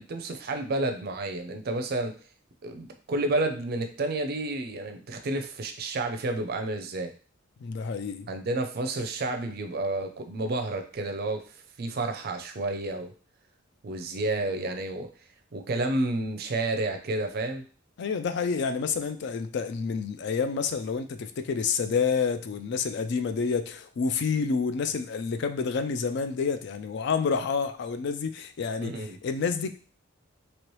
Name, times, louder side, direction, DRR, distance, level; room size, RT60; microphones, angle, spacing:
voice 1, 0.0-2.2 2.6-7.1 8.3-13.1 13.8-15.1 15.5-17.7 28.8-29.2, right 2 dB, 50° right, 6 dB, 0.5 m, -30 dB
voice 2, 7.6-8.3 18.0-29.7, left 5 dB, 60° left, 9 dB, 0.4 m, -29 dB
3.0 x 2.9 x 3.0 m, 0.40 s
head